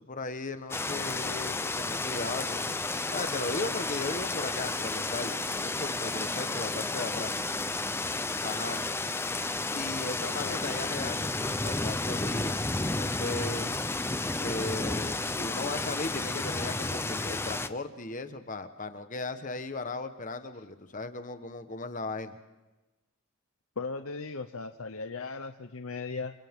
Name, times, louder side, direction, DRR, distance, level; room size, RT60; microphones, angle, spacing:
voice 1, 0.0-2.8 3.1-7.3 8.4-8.9 9.7-12.6 13.0-13.7 14.4-22.4, left 3 dB, 40° left, 9 dB, 1.3 m, -37 dB
sound 1, 0.7-17.7, left 2 dB, 10° left, 0.6 m, -32 dB
voice 2, 10.2-10.6 23.8-26.3, left 4 dB, 75° left, 8 dB, 0.9 m, -37 dB
28.5 x 28.5 x 3.7 m, 1.1 s
head